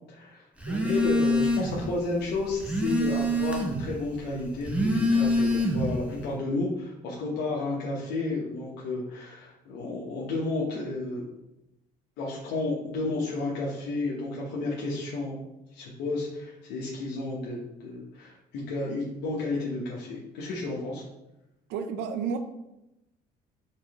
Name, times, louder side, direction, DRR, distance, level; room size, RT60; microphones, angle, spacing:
voice 1, 0.1-0.5 0.8-11.2 12.2-15.3 15.7-21.0, left 2 dB, 80° left, -4 dB, 0.9 m, -32 dB
Telephone, 0.6-1.9 2.2-3.9 4.5-6.0, left 1 dB, 5° right, 0.8 m, -25 dB
voice 2, 21.7-22.4, right 6 dB, 85° right, 8 dB, 0.5 m, -31 dB
4.6 x 3.8 x 2.9 m, 0.90 s
cardioid pair, 110°, 17 cm